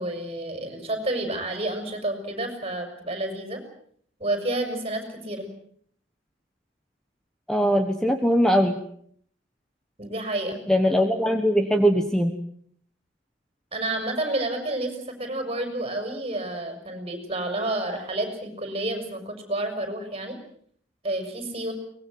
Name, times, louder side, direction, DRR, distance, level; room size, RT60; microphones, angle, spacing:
voice 1, 0.0-3.6 4.2-5.5 10.0-10.6 13.7-20.4 21.0-21.7, right 1 dB, 30° right, 5 dB, 5.8 m, -30 dB
voice 2, 7.5-8.8 10.7-12.3, equal, 5° left, 6 dB, 1.3 m, -21 dB
23.5 x 20.5 x 7.8 m, 0.63 s
head